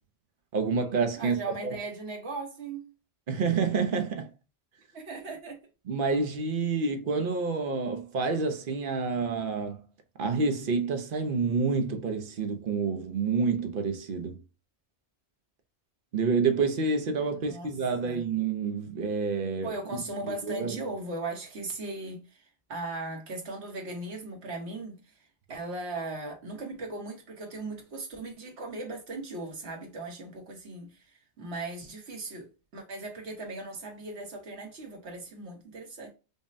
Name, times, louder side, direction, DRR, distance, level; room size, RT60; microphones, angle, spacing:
voice 1, 0.5-1.8 3.3-4.3 5.9-9.8 10.2-14.4 16.1-20.8, right 4 dB, 55° right, 0.7 m, -28 dB
voice 2, 1.2-2.9 4.9-5.6 17.2-17.7 18.0-18.2 19.6-25.2 25.5-32.5 32.7-36.1, right 2 dB, 75° right, 1.4 m, -38 dB
5.2 x 2.1 x 2.5 m
omnidirectional pair, 1.1 m